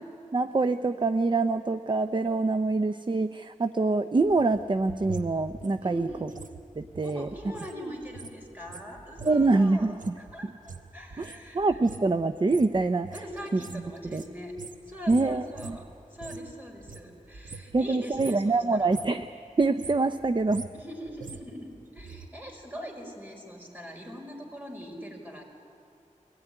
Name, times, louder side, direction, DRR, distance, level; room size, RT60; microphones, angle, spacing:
voice 1, 0.3-6.1 6.8-7.3 9.2-10.1 11.2-13.1 13.5-13.8 14.1-14.2 15.1-15.8 17.7-19.3 19.6-20.7, right 3 dB, 35° right, 10 dB, 0.6 m, -25 dB
sound 1, 4.2-16.5 16.8-17.9 18.1-18.5 18.8-19.2 19.6-22.3 22.5-22.6, right 4 dB, 80° right, 1.1 m, -44 dB
voice 2, 5.8-6.3 7.0-10.5 10.9-11.8 13.1-14.6 14.9-15.9 16.1-19.0 20.7-25.4, equal, 15° right, 0 dB, 5.1 m, -42 dB
23.0 x 17.5 x 10.0 m, 2.5 s
wide cardioid pair, 60°, 13 cm